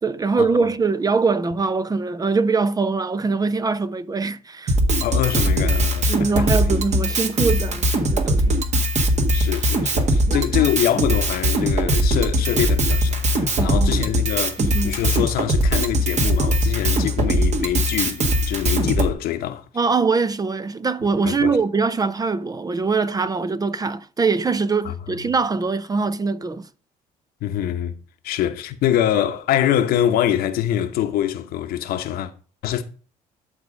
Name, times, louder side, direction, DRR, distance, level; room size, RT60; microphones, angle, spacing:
voice 1, 0.0-4.8 6.1-8.6 10.3-10.4 13.6-14.1 14.6-15.0 19.7-26.7, right 4 dB, 25° right, 0.6 m, -23 dB
Drum kit, 4.7-19.1, equal, 45° right, 1.6 m, -20 dB
voice 2, 5.0-6.5 9.3-19.7 21.2-21.5 24.8-24.9 27.4-28.0 28.2-32.3 32.6-32.8, left 11 dB, 70° left, 1.0 m, -24 dB
11.5 x 3.9 x 5.1 m
supercardioid pair, 85°, 16 cm